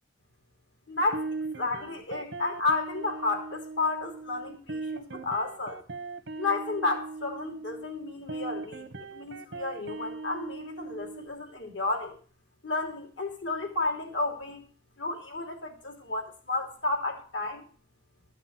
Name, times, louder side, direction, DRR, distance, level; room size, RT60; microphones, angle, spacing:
voice 1, 0.9-1.3 1.5-5.8 6.4-8.9 9.1-12.2 12.6-14.6 15.0-17.6, left 3 dB, 80° left, 3 dB, 3.1 m, -32 dB
sound 1, 1.0-11.3, right 3 dB, 90° right, 1.0 m, -39 dB
13.0 x 6.0 x 7.5 m, 0.40 s
head